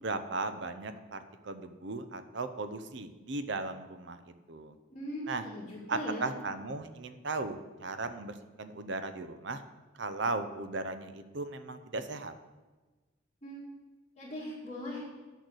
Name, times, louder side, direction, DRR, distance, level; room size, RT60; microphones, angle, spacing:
voice 1, 0.0-4.7 5.3-5.5 5.9-9.6 10.0-12.3, right 3 dB, 60° right, 9 dB, 0.7 m, -37 dB
voice 2, 4.9-6.3 13.4-13.6 14.2-15.0, equal, 30° left, -9 dB, 2.0 m, -39 dB
10.0 x 6.5 x 6.3 m, 1.2 s
head